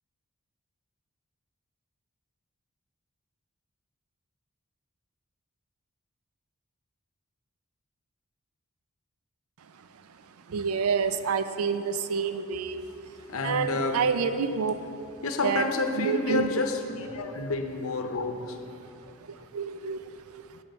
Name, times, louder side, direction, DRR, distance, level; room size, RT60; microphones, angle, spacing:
voice 1, 10.5-13.1 13.4-14.8 15.4-15.6 15.9-16.5 19.2-20.6, right 6 dB, 75° right, 11 dB, 0.4 m, -29 dB
voice 2, 13.3-14.0 15.2-18.6, left 3 dB, 65° left, 6 dB, 0.8 m, -29 dB
8.6 x 7.7 x 5.5 m, 2.7 s
head